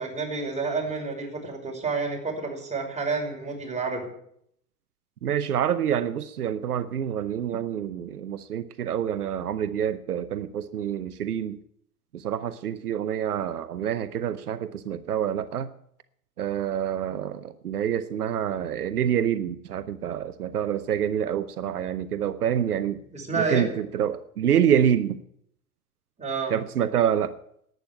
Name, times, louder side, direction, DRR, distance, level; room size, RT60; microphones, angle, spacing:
voice 1, 0.0-4.1 23.1-23.7 26.2-26.5, right 4 dB, 15° right, 0 dB, 5.8 m, -29 dB
voice 2, 5.2-11.6 12.1-15.7 16.4-23.0 23.3-25.2 26.5-27.4, right 9 dB, 85° right, 13 dB, 0.8 m, -27 dB
11.5 x 9.6 x 9.9 m, 0.71 s
hypercardioid pair, 80°, 44 cm